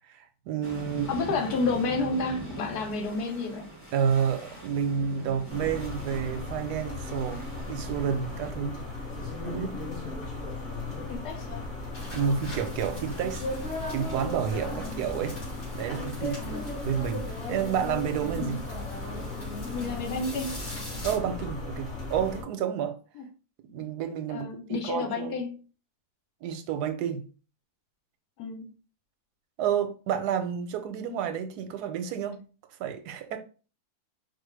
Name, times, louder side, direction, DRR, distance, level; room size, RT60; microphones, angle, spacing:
voice 1, 0.1-1.1 3.9-8.8 9.4-9.8 12.1-13.4 13.9-15.4 15.7-18.6 21.0-22.9 23.6-25.4 26.4-27.2 29.6-32.4 32.8-33.4, right 8 dB, 90° right, 1.2 m, -30 dB
sound 1, 0.6-8.5, right 1 dB, 10° left, 0.9 m, -42 dB
voice 2, 1.1-3.7 11.1-11.6 12.2-12.5 14.6-15.0 16.4-16.7 18.3-18.6 19.7-20.6 23.2-23.3 24.3-25.5 28.4-28.7, left 3 dB, 80° left, 1.3 m, -31 dB
sound 2, 5.5-22.4, left 2 dB, 45° left, 1.4 m, -36 dB
sound 3, 11.9-21.2, equal, 65° left, 2.2 m, -44 dB
4.6 x 2.2 x 3.2 m
omnidirectional pair, 1.6 m